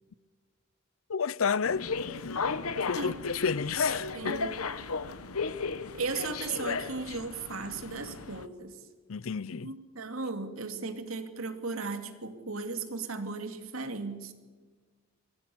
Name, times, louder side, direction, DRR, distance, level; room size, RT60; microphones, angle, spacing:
voice 1, 1.1-1.8 2.3-2.4 2.9-4.3 9.1-9.7, left 6 dB, 70° left, 0.6 m, -31 dB
sound 1, 1.6-8.5, left 4 dB, 90° left, 1.1 m, -34 dB
voice 2, 3.9-4.5 5.9-8.8 9.6-14.3, right 4 dB, 80° right, 2.7 m, -36 dB
26.0 x 18.5 x 7.1 m
head